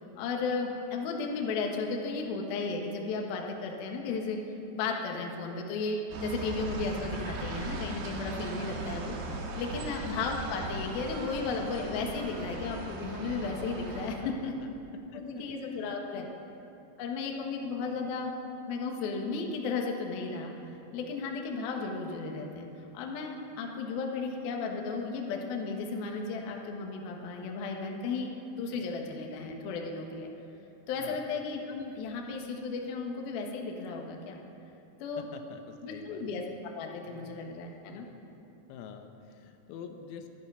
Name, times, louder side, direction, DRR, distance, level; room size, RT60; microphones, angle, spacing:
voice 1, 0.2-4.4 4.7-14.5 15.1-16.2 17.0-18.3 18.7-20.5 20.9-22.7 22.9-30.3 30.9-34.4 35.0-35.3 35.8-36.4 36.7-38.1, left 4 dB, 65° left, 1 dB, 2.5 m, -34 dB
sound 1, 6.1-14.2, right 2 dB, 60° right, 2.9 m, -38 dB
voice 2, 9.8-10.1 14.1-14.7 15.1-16.3 31.0-31.3 35.2-36.2 37.0-37.3 37.9-38.1 38.4-40.3, left 7 dB, 80° left, 5 dB, 3.6 m, -47 dB
22.5 x 10.5 x 5.5 m, 2.8 s
omnidirectional pair, 6.0 m